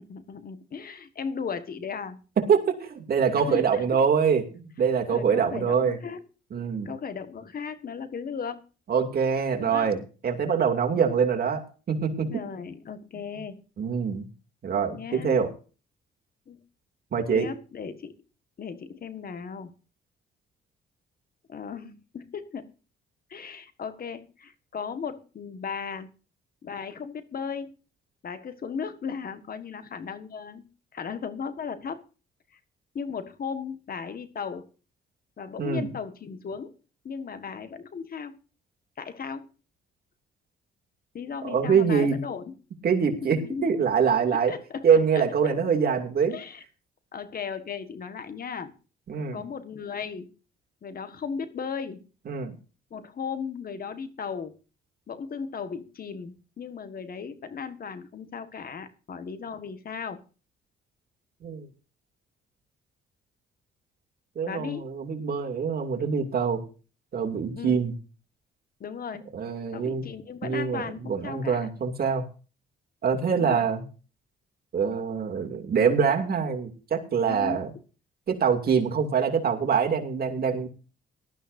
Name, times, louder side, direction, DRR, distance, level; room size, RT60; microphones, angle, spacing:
voice 1, 0.0-2.2 3.5-3.8 5.1-6.2 6.8-8.6 9.6-10.0 12.2-13.6 14.9-15.4 16.5-16.6 17.3-18.2 18.6-19.7 21.5-22.7 23.3-26.1 26.6-27.7 28.2-30.6 30.9-32.0 32.9-34.7 35.4-36.7 37.0-38.4 39.0-39.5 41.1-42.6 43.2-43.7 44.5-44.9 45.1-45.5 46.3-46.6 47.1-48.8 49.3-50.3 50.8-52.0 52.9-54.6 55.1-60.2 64.4-64.9 67.5-67.8 68.8-69.2 69.7-71.7 73.3-73.7 77.2-77.6, left 6 dB, 50° left, 11 dB, 1.6 m, -36 dB
voice 2, 2.4-6.0 6.5-6.9 8.9-10.0 10.2-12.3 13.8-14.3 14.6-15.5 17.1-17.5 35.6-35.9 41.4-42.2 42.8-44.5 44.8-46.4 49.1-49.4 52.3-52.5 61.4-61.7 64.4-66.6 67.1-67.9 69.3-70.0 70.4-72.2 73.0-73.8 74.7-77.7 78.3-80.7, right 6 dB, 50° right, 3 dB, 2.6 m, -24 dB
18.0 x 12.5 x 2.7 m, 0.35 s
cardioid pair, 90°, 20 cm